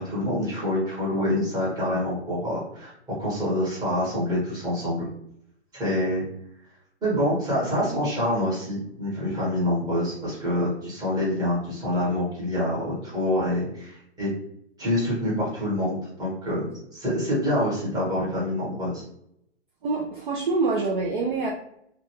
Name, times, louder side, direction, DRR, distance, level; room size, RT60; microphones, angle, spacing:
voice 1, 0.0-5.1 5.7-6.2 7.0-14.3 14.8-19.0, left 1 dB, 10° right, -8 dB, 1.2 m, -26 dB
voice 2, 19.8-21.5, right 3 dB, 45° right, -1 dB, 0.4 m, -25 dB
2.4 x 2.2 x 3.0 m, 0.74 s
hypercardioid pair, 140°, 35 cm